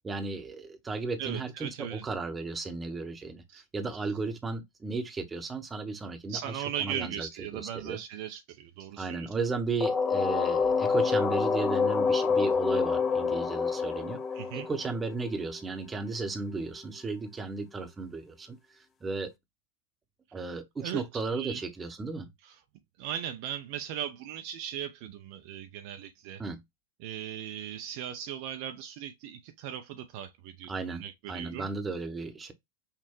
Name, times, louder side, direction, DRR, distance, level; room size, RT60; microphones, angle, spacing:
voice 1, 0.0-7.3 7.5-8.0 9.0-14.2 14.5-19.3 20.3-22.3 26.4-26.6 30.7-32.5, right 4 dB, 15° right, 0.8 m, -35 dB
voice 2, 1.2-2.1 3.5-3.6 6.3-9.3 14.3-14.7 20.8-21.6 22.4-22.6 23.0-26.4 27.0-31.7, right 10 dB, 45° right, 0.5 m, -38 dB
sound 1, 9.8-15.5, left 5 dB, 25° left, 0.4 m, -27 dB
5.8 x 2.1 x 2.9 m
figure-of-eight pair, 90°, 0 cm